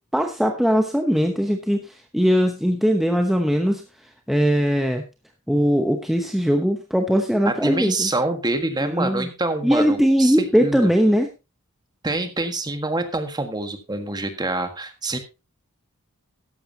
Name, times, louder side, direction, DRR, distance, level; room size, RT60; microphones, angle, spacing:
voice 1, 0.1-3.8 4.3-5.0 5.5-8.1 8.8-9.3 9.6-11.3, equal, ahead, 4 dB, 0.9 m, -20 dB
voice 2, 7.4-10.3 10.6-10.9 12.0-15.2, right 2 dB, 20° right, 7 dB, 1.6 m, -26 dB
13.0 x 11.0 x 2.8 m, 0.27 s
head